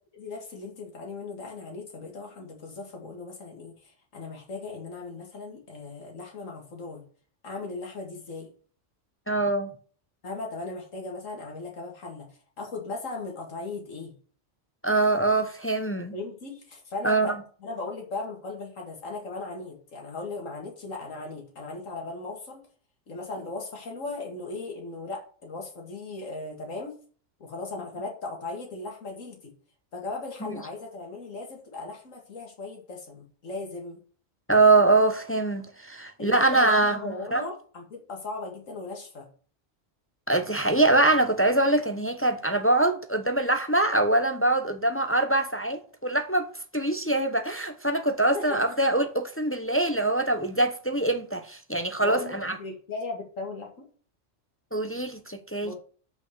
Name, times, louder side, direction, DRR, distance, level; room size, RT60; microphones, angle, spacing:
voice 1, 0.1-7.0 7.4-8.5 10.2-12.3 12.6-14.1 16.1-22.6 23.1-27.0 27.4-29.5 29.9-34.0 36.2-39.3 48.3-48.6 52.0-53.9 55.6-55.8, left 3 dB, 80° left, 2.3 m, -37 dB
voice 2, 9.3-9.7 14.8-16.1 17.0-17.3 30.4-30.6 34.5-37.4 40.3-46.5 46.7-52.6 54.7-55.7, right 2 dB, 15° left, 0.6 m, -24 dB
5.9 x 5.7 x 6.6 m
omnidirectional pair, 1.3 m